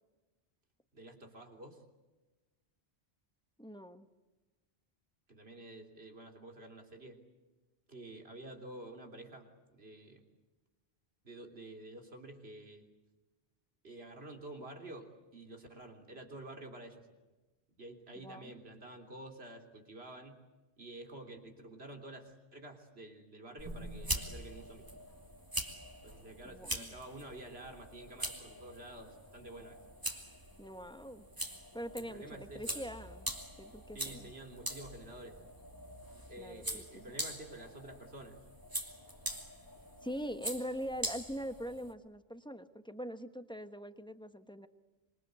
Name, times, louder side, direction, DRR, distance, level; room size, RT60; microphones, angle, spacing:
voice 1, 0.9-1.8 5.3-7.2 7.9-10.2 11.2-12.9 13.8-17.1 17.8-20.4 20.8-24.9 26.0-29.8 32.0-32.9 33.9-35.4 36.3-38.4, right 1 dB, 70° right, 3 dB, 3.6 m, -50 dB
voice 2, 3.6-4.1 18.2-18.5 26.4-26.9 30.6-31.2 31.7-33.3 33.6-34.3 36.4-37.0 40.0-44.7, equal, 5° left, 9 dB, 1.3 m, -43 dB
sound 1, 23.6-41.9, right 1 dB, 20° right, 2.5 m, -43 dB
26.5 x 24.0 x 8.1 m, 1.2 s
omnidirectional pair, 1.1 m